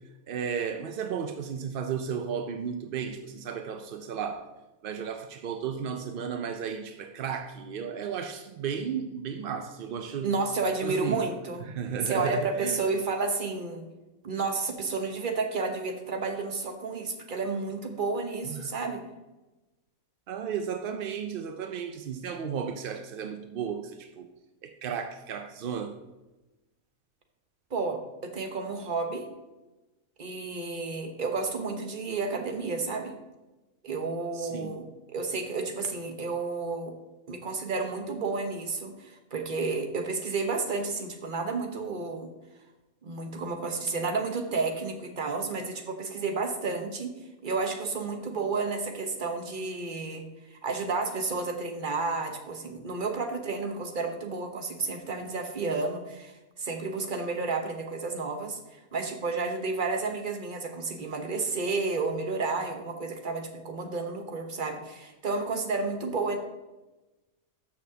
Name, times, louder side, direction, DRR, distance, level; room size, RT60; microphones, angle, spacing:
voice 1, 0.3-4.5 4.8-10.3 10.8-11.2 11.7-12.8 18.4-18.7 20.3-24.3 24.6-26.0 34.3-34.8, right 7 dB, 65° right, 0.5 m, -34 dB
voice 2, 10.2-11.6 12.0-13.9 14.2-19.0 27.7-29.3 30.2-33.1 33.8-36.9 37.3-42.3 43.0-47.1 47.4-66.4, right 4 dB, 40° right, 1.0 m, -31 dB
13.0 x 6.2 x 2.7 m
omnidirectional pair, 1.5 m